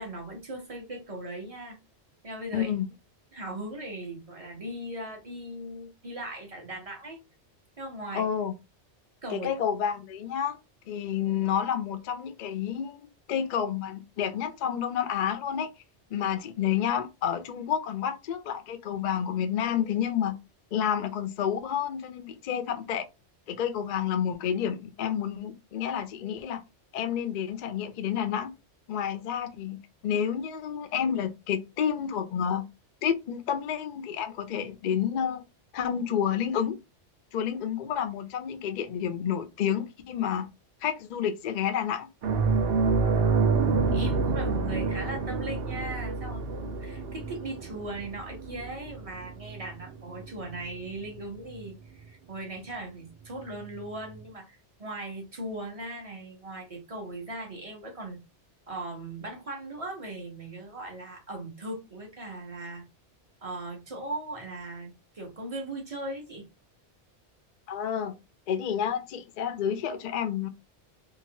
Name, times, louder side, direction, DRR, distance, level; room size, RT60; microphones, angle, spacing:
voice 1, 0.0-1.8 2.2-2.7 3.3-7.2 7.8-8.3 9.2-9.5 43.6-58.2 58.7-62.9 63.4-66.4, right 1 dB, 35° right, 0.9 m, -39 dB
voice 2, 2.5-2.9 8.1-8.5 9.3-10.6 10.9-15.7 16.1-20.4 20.7-23.1 23.5-26.6 26.9-28.5 28.9-29.8 30.0-32.6 33.0-35.4 35.7-36.8 37.3-40.5 40.8-42.1 67.7-68.2 68.5-70.5, left 8 dB, 60° left, 0.5 m, -29 dB
sound 1, 42.2-51.2 51.5-51.7 53.7-53.8, right 4 dB, 65° right, 0.8 m, -28 dB
2.9 x 2.5 x 2.8 m
omnidirectional pair, 1.2 m